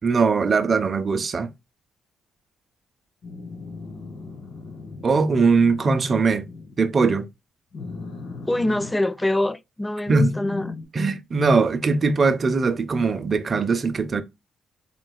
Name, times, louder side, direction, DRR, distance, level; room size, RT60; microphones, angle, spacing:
voice 1, 0.0-1.5 5.0-6.5 6.8-7.3 10.1-10.3 10.9-14.2, right 4 dB, 40° right, 0.6 m, -20 dB
sound 1, 3.2-6.8 7.7-8.9 10.1-10.8, left 4 dB, 80° left, 2.5 m, -37 dB
voice 2, 8.5-10.8, left 1 dB, 10° left, 0.3 m, -24 dB
3.9 x 3.8 x 2.3 m
cardioid pair, 90°, 0 cm